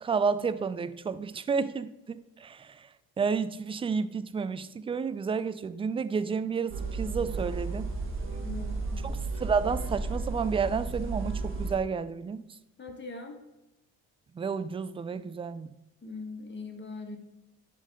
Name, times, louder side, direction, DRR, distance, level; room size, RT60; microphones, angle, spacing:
voice 1, 0.0-2.8 3.2-7.9 9.0-12.5 14.4-15.7, right 5 dB, 15° right, 0.3 m, -31 dB
sound 1, 6.7-11.8, right 3 dB, 35° right, 1.6 m, -33 dB
voice 2, 8.4-9.0 12.8-13.4 16.0-17.2, left 3 dB, 30° left, 1.7 m, -41 dB
10.5 x 3.7 x 3.7 m
supercardioid pair, 80°, 37 cm